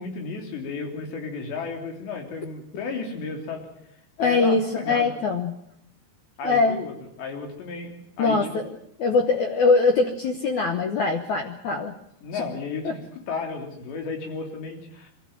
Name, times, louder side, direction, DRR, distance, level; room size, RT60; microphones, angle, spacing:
voice 1, 0.0-3.6 4.2-5.1 6.4-6.9 7.2-8.6 12.2-13.0 13.3-15.1, left 4 dB, 85° left, 3 dB, 5.5 m, -33 dB
voice 2, 4.2-5.6 6.4-6.8 8.2-8.6 9.0-12.0 12.3-12.4 12.8-13.0, left 4 dB, 70° left, 5 dB, 1.9 m, -22 dB
24.0 x 14.0 x 9.1 m, 0.78 s
omnidirectional pair, 4.9 m